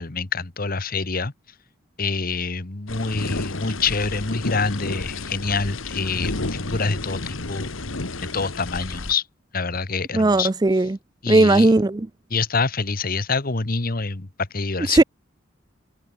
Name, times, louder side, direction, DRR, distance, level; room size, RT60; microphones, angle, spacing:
voice 1, 0.0-1.3 2.0-7.7 8.3-9.2 9.5-10.5 11.2-11.7 12.3-14.3 14.5-15.0, left 4 dB, 50° left, 1.3 m, -26 dB
sound 1, 2.9-9.1, left 2 dB, 90° left, 1.9 m, -31 dB
voice 2, 10.1-11.0 11.3-12.1 14.9-15.0, right 2 dB, 20° right, 0.5 m, -17 dB
head